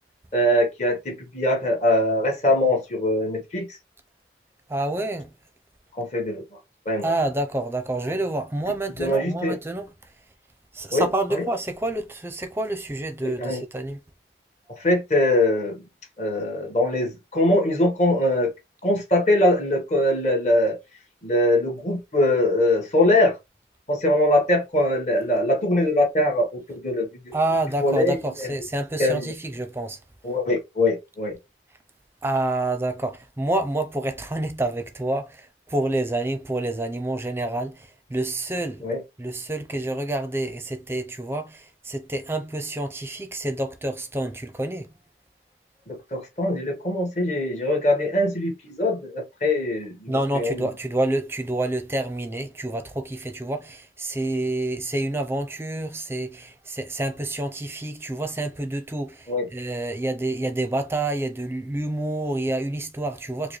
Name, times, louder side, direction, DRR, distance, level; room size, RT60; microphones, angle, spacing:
voice 1, 0.3-3.8 5.9-6.6 6.8-7.0 9.0-9.6 10.9-11.5 13.2-13.6 14.7-15.8 16.2-18.5 18.8-20.8 21.2-23.4 23.9-27.3 27.8-28.5 29.0-29.3 30.2-31.4 38.8-39.0 45.9-50.6 59.3-59.5, left 1 dB, 40° left, 1.4 m, -22 dB
voice 2, 4.7-5.3 7.0-9.9 10.7-14.0 27.3-30.0 32.2-38.8 39.2-44.9 50.1-63.6, right 2 dB, 15° right, 0.5 m, -28 dB
4.7 x 2.1 x 3.1 m
head